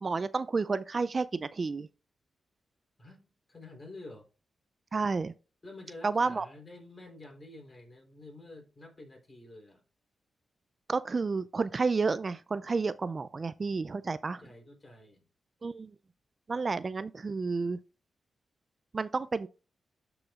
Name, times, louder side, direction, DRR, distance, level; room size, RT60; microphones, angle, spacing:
voice 1, 0.0-1.9 4.9-5.3 6.0-6.5 10.9-14.4 15.6-15.9 16.5-17.8 18.9-19.5, right 4 dB, 45° right, 0.3 m, -31 dB
voice 2, 3.0-4.3 5.6-9.8 14.4-15.3, left 2 dB, 35° left, 3.4 m, -49 dB
12.5 x 4.9 x 2.4 m
cardioid pair, 55°, 0 cm